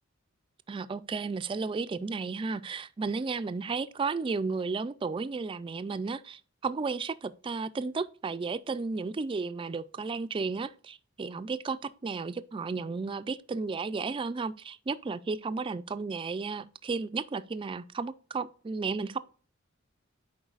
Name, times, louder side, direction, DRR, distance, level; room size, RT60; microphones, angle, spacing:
voice 1, 0.7-19.2, right 4 dB, 25° right, 0.3 m, -33 dB
11.0 x 4.7 x 2.4 m
head